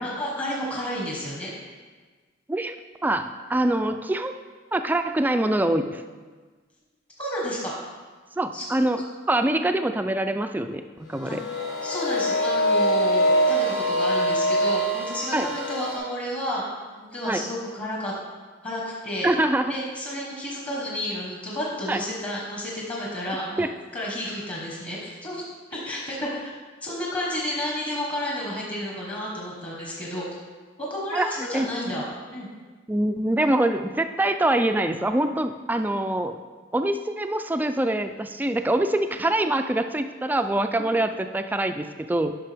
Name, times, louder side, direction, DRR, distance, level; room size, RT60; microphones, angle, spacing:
voice 1, 0.0-1.5 7.2-7.7 8.5-8.6 11.2-11.3 11.8-16.6 17.1-18.1 18.6-19.3 19.7-23.7 23.9-25.4 25.7-26.5 26.8-30.3 30.8-32.0 32.3-32.5, left 1 dB, 30° left, -4 dB, 1.3 m, -31 dB
voice 2, 3.0-4.4 4.7-6.0 8.4-11.4 15.3-15.5 17.2-17.4 19.2-19.8 21.9-22.0 23.6-23.7 31.1-32.1 32.9-36.4 36.7-42.4, right 1 dB, 10° right, 8 dB, 0.3 m, -24 dB
sound 1, 11.2-16.0, equal, 65° left, 1.9 m, -23 dB
9.9 x 5.8 x 3.4 m, 1.4 s
head